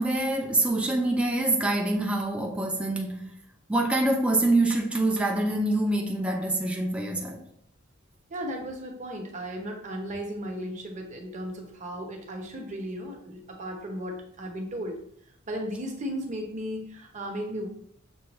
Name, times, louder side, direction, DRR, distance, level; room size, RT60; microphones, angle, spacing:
voice 1, 0.0-3.3 3.7-7.4, right 2 dB, 5° right, 0.4 m, -25 dB
voice 2, 8.3-15.0 15.5-17.7, equal, 35° right, 0.8 m, -35 dB
6.1 x 2.3 x 2.9 m
head